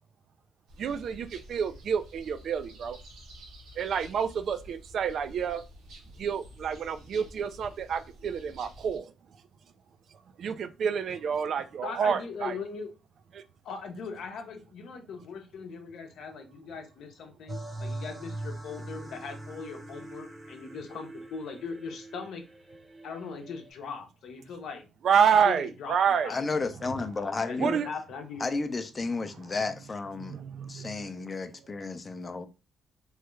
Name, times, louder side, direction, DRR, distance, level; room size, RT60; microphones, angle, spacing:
sound 1, 0.7-9.0, equal, 85° right, 1.0 m, -50 dB
voice 1, 0.8-3.0 3.8-5.6 6.2-9.1 10.4-12.6 13.3-13.4 25.0-26.3 27.6-27.9 30.2-31.1, right 7 dB, 65° right, 0.3 m, -28 dB
voice 2, 11.8-12.9 13.6-22.4 23.0-24.9 25.3-26.0 26.2-26.7 27.4-28.6, left 5 dB, 75° left, 0.7 m, -40 dB
sound 2, 17.5-23.7, right 1 dB, 30° right, 0.8 m, -42 dB
voice 3, 26.3-27.7 28.4-30.3 30.7-32.5, left 3 dB, 30° left, 0.5 m, -32 dB
3.1 x 2.3 x 3.1 m
cardioid pair, 90°, 0 cm